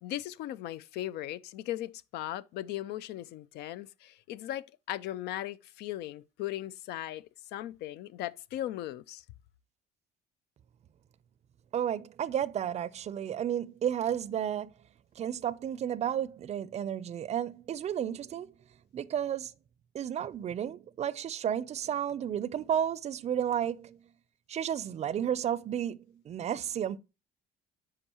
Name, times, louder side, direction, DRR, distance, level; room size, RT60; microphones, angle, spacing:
voice 1, 0.0-9.2, left 13 dB, 80° left, 0.4 m, -38 dB
voice 2, 11.7-14.7 15.2-18.5 18.9-19.5 19.9-24.0 24.5-26.0 26.3-27.0, right 9 dB, 40° right, 0.4 m, -32 dB
9.8 x 4.8 x 2.9 m
cardioid pair, 110°, 17 cm